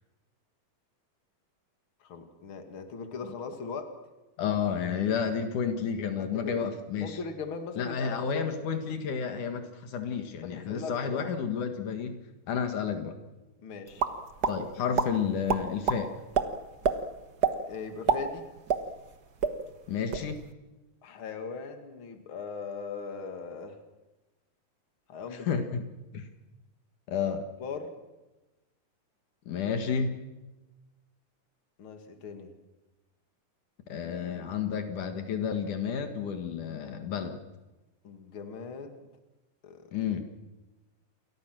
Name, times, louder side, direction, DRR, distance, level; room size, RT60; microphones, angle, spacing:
voice 1, 2.0-3.9 6.2-6.6 6.9-8.6 10.4-11.3 13.6-14.0 17.7-18.5 21.0-23.8 25.1-25.5 27.6-27.9 31.8-32.5 38.0-39.1 39.6-39.8, left 5 dB, 45° left, 6 dB, 2.9 m, -39 dB
voice 2, 4.4-7.2 7.8-12.2 12.5-13.2 14.5-16.1 19.9-20.5 25.3-25.9 26.1-26.3 27.1-27.5 29.5-30.2 33.9-37.4 39.9-40.3, left 7 dB, 75° left, 6 dB, 3.2 m, -31 dB
sound 1, 14.0-14.5 14.9-15.1 15.5-16.0 16.3-16.4 16.8-17.0 17.4-17.6 17.9-19.1 19.4-19.5 19.9-20.3, right 6 dB, 45° right, 1.3 m, -25 dB
29.0 x 23.0 x 6.3 m, 1.1 s
omnidirectional pair, 3.6 m